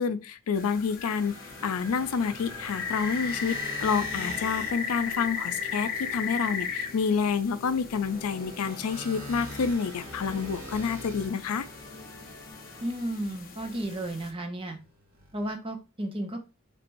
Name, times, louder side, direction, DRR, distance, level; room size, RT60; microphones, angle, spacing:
voice 1, 0.0-1.3 1.6-11.7, left 6 dB, 85° left, 0.4 m, -28 dB
sound 1, 0.5-14.3, left 6 dB, 40° left, 0.8 m, -37 dB
sound 2, 1.2-12.9, left 2 dB, 15° left, 1.0 m, -49 dB
sound 3, 1.3-6.0 6.9-12.6 13.9-14.4 14.8-15.5, equal, 65° right, 2.1 m, -44 dB
voice 2, 12.8-14.8 15.3-16.4, right 1 dB, 25° right, 0.6 m, -33 dB
4.3 x 3.3 x 2.6 m
head